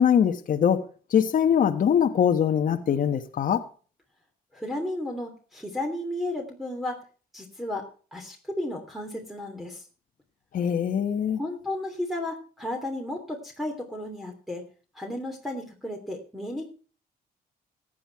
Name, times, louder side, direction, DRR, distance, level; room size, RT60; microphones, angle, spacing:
voice 1, 0.0-3.6 10.5-11.4, left 8 dB, 55° left, 1.2 m, -22 dB
voice 2, 4.5-7.0 7.3-9.8 11.4-14.6 14.9-16.7, left 1 dB, ahead, 3.0 m, -33 dB
14.0 x 9.0 x 4.7 m
supercardioid pair, 75°, 17 cm